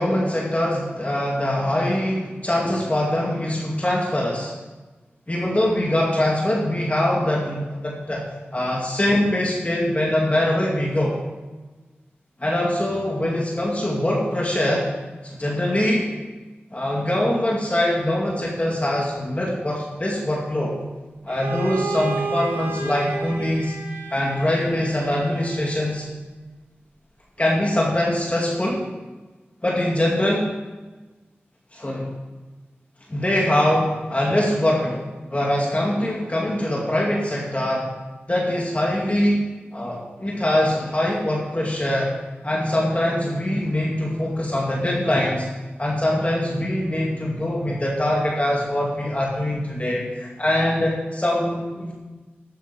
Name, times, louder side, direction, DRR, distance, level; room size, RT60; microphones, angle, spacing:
voice 1, 0.0-4.5 5.3-8.2 8.5-11.2 12.4-14.9 15.2-16.1 16.7-20.8 21.2-23.7 24.1-26.1 27.4-28.8 29.6-30.5 31.7-32.1 33.1-35.0 35.3-37.9 38.3-42.1 42.4-45.5 45.8-51.9, left 1 dB, 30° left, -3 dB, 2.4 m, -23 dB
Bowed string instrument, 21.3-26.1, right 3 dB, 85° right, 3.0 m, -32 dB
12.0 x 9.3 x 4.4 m, 1.2 s
cardioid pair, 40°, 4 cm